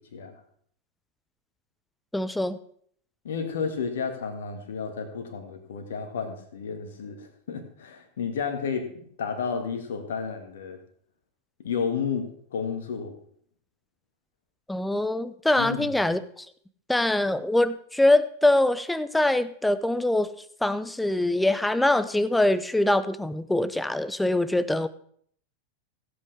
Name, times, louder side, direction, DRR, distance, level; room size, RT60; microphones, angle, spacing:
voice 1, 2.1-2.6 14.7-16.5 16.9-20.3 20.6-24.9, left 1 dB, 5° left, 15 dB, 0.6 m, -23 dB
voice 2, 3.2-10.8 11.6-13.1 15.6-15.9, left 6 dB, 60° left, 6 dB, 1.9 m, -32 dB
16.5 x 8.3 x 3.4 m, 0.63 s
figure-of-eight pair, 90°, 0 cm